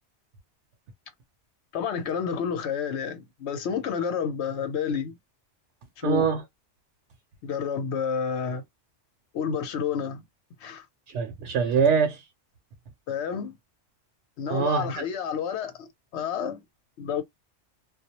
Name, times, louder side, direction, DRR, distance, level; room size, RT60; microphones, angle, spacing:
voice 1, 1.7-5.1 6.0-6.3 7.4-8.6 9.3-10.2 10.6-10.9 13.1-13.5 14.4-16.6 17.0-17.2, left 7 dB, 75° left, 0.9 m, -30 dB
voice 2, 6.0-6.4 11.1-12.2 14.5-15.0, right 6 dB, 80° right, 0.9 m, -23 dB
2.3 x 2.0 x 2.8 m
omnidirectional pair, 1.2 m